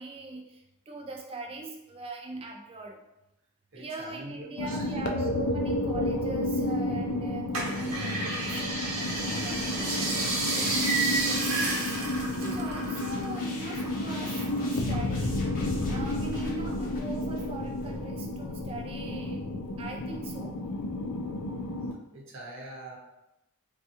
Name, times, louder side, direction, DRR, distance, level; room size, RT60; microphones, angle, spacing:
voice 1, 0.0-3.0 3.7-15.5 15.9-19.4 19.8-20.5, right 3 dB, 25° right, 2 dB, 0.3 m, -42 dB
voice 2, 3.7-5.4 22.1-23.0, right 1 dB, 55° right, -3 dB, 0.8 m, -43 dB
sound 1, 4.6-21.9, left 1 dB, 80° left, 0.4 m, -31 dB
sound 2, 7.5-13.4 13.7-15.0 15.4-16.2 16.7-16.8, right 2 dB, 85° right, 0.8 m, -31 dB
sound 3, 8.7-18.0, left 1 dB, 40° left, 0.7 m, -45 dB
3.4 x 2.3 x 2.8 m, 0.90 s
head